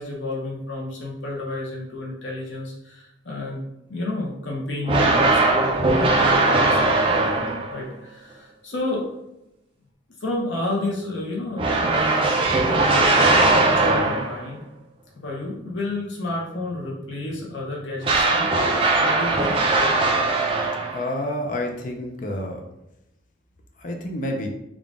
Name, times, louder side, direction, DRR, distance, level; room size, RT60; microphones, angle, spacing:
voice 1, 0.0-3.6 3.9-9.1 10.2-14.6 15.2-18.5 19.0-19.6, left 2 dB, 75° left, -2 dB, 0.8 m, -31 dB
sound 1, 4.9-7.8 11.6-14.5 18.0-21.1, right 2 dB, 30° right, 0.5 m, -20 dB
voice 2, 20.9-22.6 23.8-24.5, left 1 dB, 45° left, 3 dB, 0.5 m, -29 dB
3.7 x 2.4 x 3.6 m, 0.88 s
head